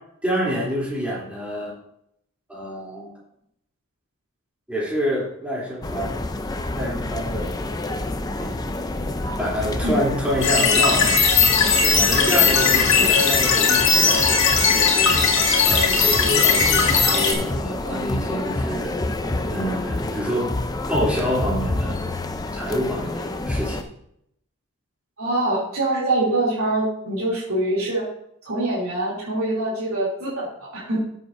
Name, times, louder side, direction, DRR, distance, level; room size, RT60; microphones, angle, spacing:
voice 1, 0.2-1.7 2.5-3.1 4.7-6.2 6.8-7.6 8.4-8.6 9.2-11.5 11.8-15.3 15.6-19.0 19.5-20.5 20.9-22.0 22.5-23.9, equal, 5° right, -6 dB, 3.1 m, -27 dB
sound 1, 5.8-23.8, left 2 dB, 15° left, 0.5 m, -28 dB
sound 2, 10.4-17.3, left 5 dB, 60° left, 1.9 m, -18 dB
voice 2, 25.2-28.1 28.4-31.0, right 2 dB, 70° right, -8 dB, 2.9 m, -24 dB
13.5 x 7.5 x 2.6 m, 0.73 s
head